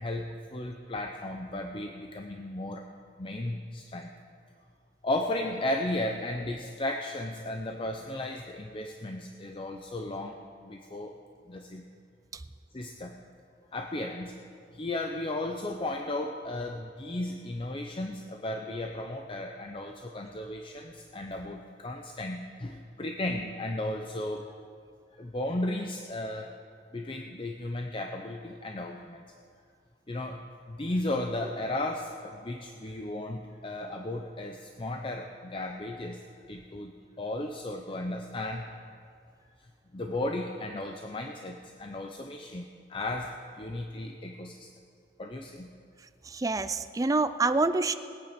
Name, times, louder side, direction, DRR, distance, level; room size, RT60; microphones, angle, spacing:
voice 1, 0.0-2.8 3.2-4.1 5.0-11.2 11.5-11.8 12.7-13.2 13.7-14.3 14.7-24.5 25.2-26.5 26.9-29.3 30.1-36.2 36.5-36.9 37.2-38.7 39.9-44.7 45.2-45.7, left 1 dB, 30° left, 3 dB, 0.6 m, -35 dB
voice 2, 46.3-47.9, right 3 dB, 20° right, 11 dB, 0.4 m, -26 dB
20.5 x 8.8 x 5.1 m, 2.3 s
head